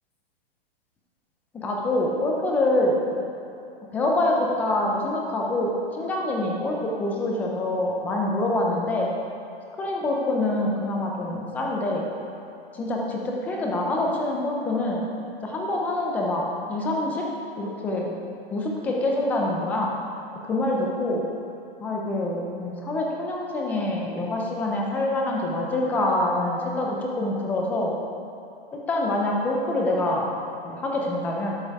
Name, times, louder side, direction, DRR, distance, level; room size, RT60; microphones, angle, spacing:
voice 1, 1.5-2.9 3.9-9.1 9.8-12.0 12.7-15.0 15.4-16.4 16.7-17.2 17.6-18.1 18.5-19.9 20.4-21.2 21.8-27.9 28.7-30.3 30.6-31.5, left 1 dB, 5° left, -1 dB, 0.4 m, -25 dB
12.0 x 5.4 x 4.7 m, 2.8 s
hypercardioid pair, 155°, 31 cm